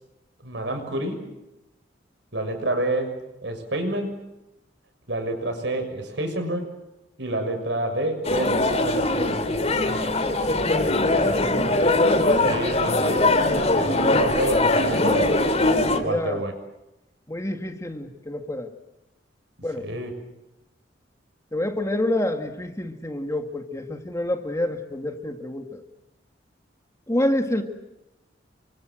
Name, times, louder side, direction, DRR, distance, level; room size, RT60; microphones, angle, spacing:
voice 1, 0.4-1.2 2.3-3.1 3.4-4.2 5.1-6.7 7.2-9.3 12.4-13.2 13.7-15.3 16.0-16.5 19.8-20.1, right 1 dB, 75° right, 6 dB, 6.7 m, -28 dB
sound 1, 8.2-16.0, left 2 dB, 35° left, 2.9 m, -21 dB
voice 2, 10.0-11.6 13.5-14.2 14.5-14.6 15.9-16.5 17.3-18.7 19.6-19.9 21.5-25.8 27.1-27.6, left 1 dB, 15° left, 6 dB, 2.0 m, -28 dB
29.5 x 25.0 x 7.8 m, 0.94 s
head